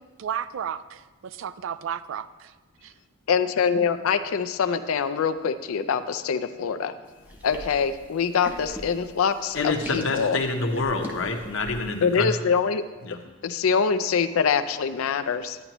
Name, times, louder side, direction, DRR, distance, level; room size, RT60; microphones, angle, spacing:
voice 1, 0.0-2.5 2.8-2.9, right 8 dB, 65° right, 15 dB, 0.3 m, -33 dB
voice 2, 3.3-6.9 7.4-10.4 12.0-12.8 13.4-15.6, left 6 dB, 85° left, 10 dB, 0.4 m, -24 dB
sound 1, 7.2-12.0, equal, 10° right, 0.7 m, -40 dB
voice 3, 9.5-12.4 13.0-13.2, left 3 dB, 65° left, 4 dB, 0.9 m, -27 dB
10.5 x 9.7 x 3.0 m, 1.3 s
head